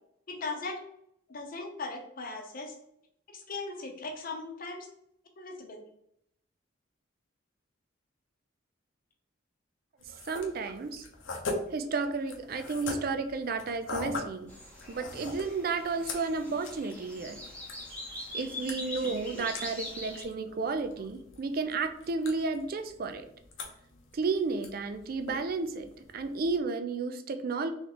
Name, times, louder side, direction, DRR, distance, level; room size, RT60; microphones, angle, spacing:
voice 1, 0.3-0.8 1.3-2.7 3.3-4.9 5.4-5.9 19.3-19.5, left 3 dB, 45° left, 4 dB, 0.8 m, -38 dB
sound 1, 10.0-26.6, left 2 dB, 75° left, 0.8 m, -43 dB
voice 2, 10.3-11.0 11.7-14.5 14.9-17.4 18.3-23.3 24.1-25.9 26.1-27.7, right 4 dB, 50° right, 8 dB, 0.4 m, -32 dB
sound 2, 14.5-20.2, left 1 dB, 5° left, 0.9 m, -43 dB
3.4 x 3.2 x 3.8 m, 0.75 s
head